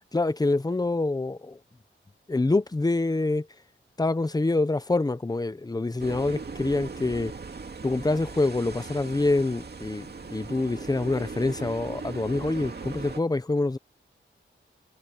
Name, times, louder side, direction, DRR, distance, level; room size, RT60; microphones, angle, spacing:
voice 1, 0.1-1.6 2.3-3.5 4.0-7.3 7.8-13.8, left 2 dB, 20° left, 0.8 m, -26 dB
sound 1, 6.0-13.2, right 4 dB, 50° right, 2.3 m, -39 dB
wide cardioid pair, 125°, 21 cm